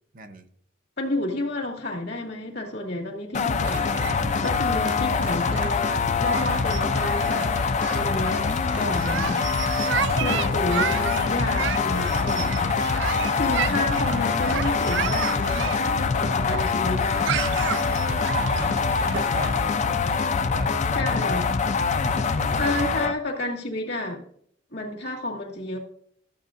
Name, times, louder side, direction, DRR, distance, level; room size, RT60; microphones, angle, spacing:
voice 1, 0.1-0.5 18.3-21.5 21.9-23.0, right 2 dB, 45° right, 0.7 m, -40 dB
voice 2, 1.0-3.9 4.4-7.5 7.9-8.5 8.7-9.5 10.1-17.4 19.1-19.2 20.9-21.5 22.6-24.2 24.7-25.8, left 1 dB, 65° left, 2.1 m, -30 dB
sound 1, 3.3-23.1, left 5 dB, 40° left, 0.4 m, -24 dB
sound 2, 3.6-19.6, right 9 dB, 70° right, 0.3 m, -33 dB
13.5 x 7.2 x 2.5 m
head